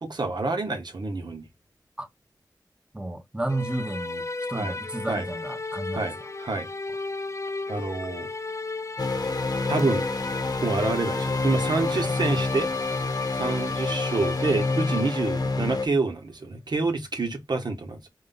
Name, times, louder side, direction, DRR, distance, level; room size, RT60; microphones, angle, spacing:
voice 1, 0.0-1.5 4.5-4.8 5.1-5.3 5.9-6.7 7.7-8.3 9.7-10.1 10.6-12.7 13.4-18.0, right 3 dB, 75° right, 0.9 m, -28 dB
voice 2, 2.9-6.1 12.0-12.1, right 2 dB, 15° right, 0.9 m, -32 dB
sound 1, 3.5-15.6, left 3 dB, 40° left, 0.5 m, -35 dB
sound 2, 9.0-15.9, left 3 dB, 65° left, 0.9 m, -28 dB
4.7 x 2.2 x 3.8 m
wide cardioid pair, 75°, 7 cm